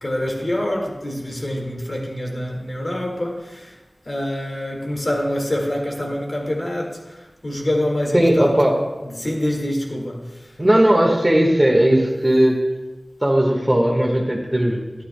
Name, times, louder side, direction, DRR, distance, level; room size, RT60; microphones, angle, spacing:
voice 1, 0.0-3.7 4.1-7.0 7.4-8.5 9.0-10.3, left 1 dB, 50° left, 1.9 m, -25 dB
voice 2, 8.1-8.8 10.6-12.6 13.2-15.0, right 1 dB, 25° right, 1.5 m, -17 dB
12.5 x 9.2 x 2.2 m
wide cardioid pair, 45°, 0 cm